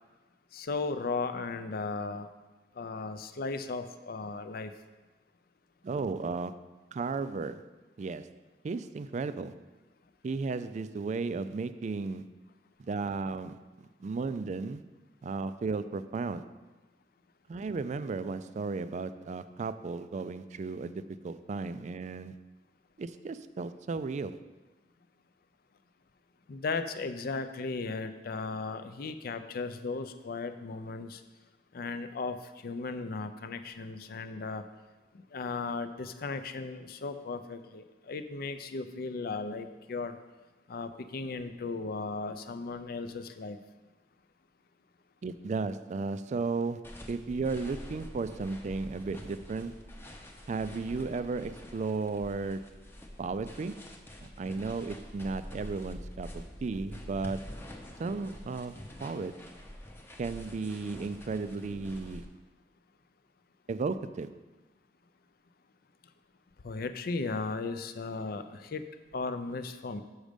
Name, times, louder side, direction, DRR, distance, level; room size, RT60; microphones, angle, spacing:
voice 1, 0.5-2.3 2.8-4.7 26.5-31.2 31.7-34.7 35.1-40.1 40.7-43.6 66.6-68.9 69.1-70.0, left 3 dB, 55° left, 10 dB, 0.5 m, -36 dB
voice 2, 5.8-7.7 8.0-8.4 8.6-9.6 10.2-12.3 12.8-13.6 14.0-14.8 15.2-16.5 17.5-22.4 23.0-24.4 45.2-49.8 50.5-52.8 53.2-53.8 54.2-57.5 58.0-59.4 60.2-62.3 63.7-64.3, right 4 dB, 40° right, 13 dB, 0.3 m, -34 dB
sound 1, 46.8-62.3, equal, 15° left, 0.7 m, -46 dB
6.4 x 6.3 x 5.1 m, 1.2 s
head